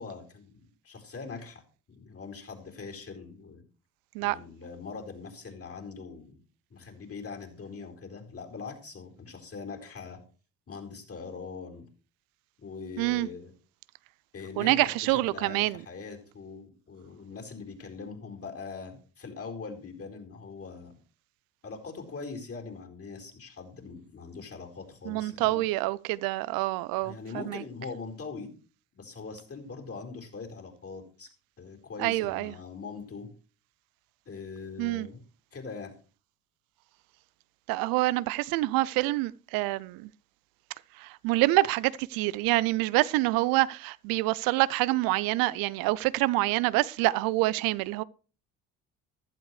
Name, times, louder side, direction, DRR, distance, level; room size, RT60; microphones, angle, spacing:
voice 1, 0.0-1.6 1.9-3.6 4.2-6.4 6.7-10.2 10.7-11.9 12.6-13.5 14.3-20.9 21.6-25.6 27.0-28.5 28.9-31.3 31.6-33.3 34.3-35.2 35.5-35.9, left 4 dB, 40° left, 4.4 m, -42 dB
voice 2, 13.0-13.3 14.6-15.8 25.1-27.6 32.0-32.5 34.8-35.1 37.7-40.1 41.0-48.0, right 19 dB, 70° right, 0.5 m, -26 dB
15.0 x 12.0 x 3.2 m
hypercardioid pair, 60°, 36 cm